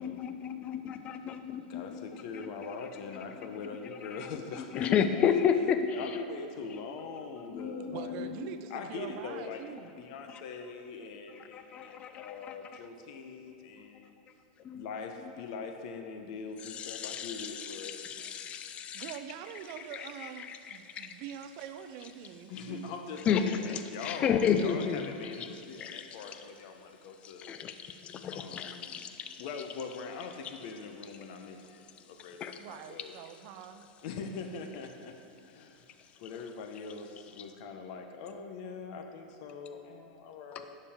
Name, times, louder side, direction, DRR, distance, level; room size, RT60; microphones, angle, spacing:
voice 1, 0.0-2.0 4.7-5.8 7.5-8.5 10.3-10.4 11.5-12.6 14.6-14.8 16.6-19.1 19.9-20.1 20.4-20.6 20.9-21.1 23.3-25.1 25.4-25.5 25.8-26.1 27.2-29.4 32.4-32.6 40.6-40.7, left 7 dB, 25° left, 9 dB, 0.4 m, -32 dB
voice 2, 1.7-5.0 5.9-8.3 8.7-14.2 14.7-18.4 22.5-27.5 28.3-29.1 29.4-33.2 34.0-35.2 35.4-35.9 36.2-40.8, left 5 dB, 50° left, 5 dB, 0.8 m, -42 dB
voice 3, 7.9-9.9 10.2-10.3 18.9-22.9 32.6-33.9, right 9 dB, 45° right, 10 dB, 0.5 m, -44 dB
9.9 x 6.7 x 3.6 m, 2.8 s
supercardioid pair, 155°, 5 cm